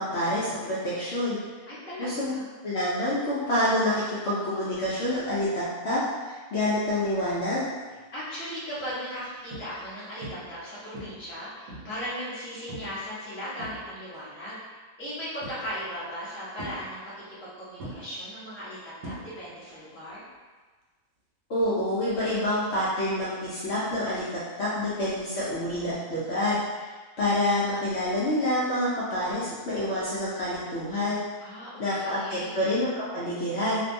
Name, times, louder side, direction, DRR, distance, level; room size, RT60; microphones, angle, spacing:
voice 1, 0.0-1.4 2.0-7.7 21.5-26.9 27.2-31.2 31.8-33.8, left 1 dB, 65° left, -9 dB, 0.7 m, -27 dB
voice 2, 1.7-2.4 8.1-14.6 15.0-18.8 19.0-20.2 31.4-32.6, equal, 15° left, -10 dB, 0.5 m, -37 dB
sound 1, 7.9-8.2 8.8-8.9 9.5-9.9 10.2-10.6 10.9-12.1 12.7-13.0 13.4-14.2 15.4-15.9 16.6-17.5 17.8-19.7 19.9-20.4 22.4-22.5, right 1 dB, 90° right, 1.1 m, -42 dB
2.6 x 2.2 x 2.5 m, 1.3 s
omnidirectional pair, 1.5 m